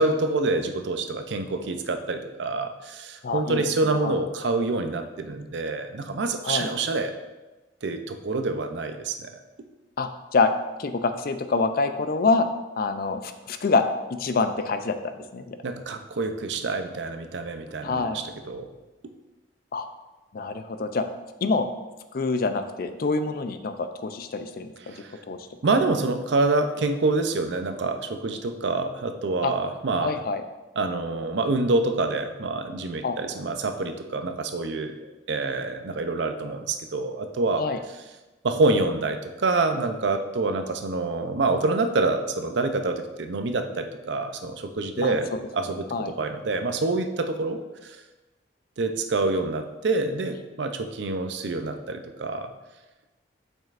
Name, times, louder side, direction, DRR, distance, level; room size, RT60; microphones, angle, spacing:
voice 1, 0.0-7.1 7.8-9.3 15.6-18.7 24.9-25.2 25.6-30.2 30.8-37.6 38.4-45.3 45.5-48.0 48.8-52.5, right 3 dB, 75° right, 7 dB, 0.5 m, -27 dB
voice 2, 3.2-3.7 4.0-4.1 6.4-6.7 10.0-10.5 10.8-12.5 12.8-15.6 17.8-18.2 19.7-19.9 20.3-21.0 21.4-21.7 22.1-24.9 25.3-25.4 29.4-29.5 30.0-30.4 33.0-33.2 37.6-37.8 45.0-45.4 45.9-46.2, left 4 dB, 55° left, 9 dB, 0.5 m, -26 dB
7.3 x 5.4 x 2.5 m, 1.1 s
head